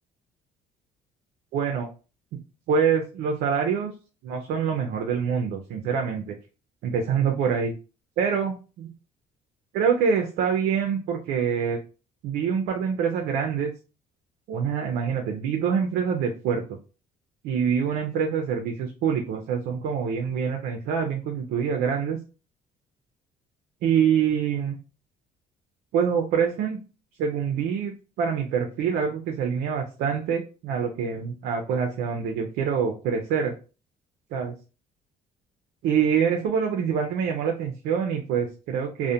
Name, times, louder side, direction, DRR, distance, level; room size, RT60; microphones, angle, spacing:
voice 1, 1.5-1.9 2.7-3.9 4.2-6.4 6.8-7.7 8.2-8.9 9.7-11.8 12.2-13.7 14.5-16.8 17.4-22.2 23.8-24.8 25.9-26.8 27.2-33.5 34.3-34.5 35.8-39.1, right 7 dB, 75° right, 3 dB, 0.4 m, -25 dB
2.4 x 2.1 x 2.7 m, 0.34 s
cardioid pair, 110°, 17 cm